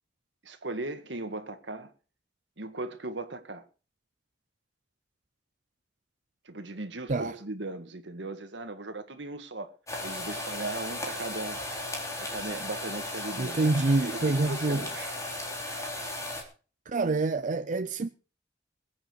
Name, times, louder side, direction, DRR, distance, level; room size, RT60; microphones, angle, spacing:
voice 1, 0.4-1.9 2.6-3.6 6.5-9.7 10.0-11.6 12.2-13.6 14.1-15.1, right 2 dB, 80° right, 1.9 m, -38 dB
sound 1, 9.9-16.4, left 1 dB, 15° left, 3.8 m, -36 dB
voice 2, 13.4-14.9 16.9-18.1, right 3 dB, 45° right, 0.6 m, -26 dB
21.5 x 8.8 x 4.7 m
head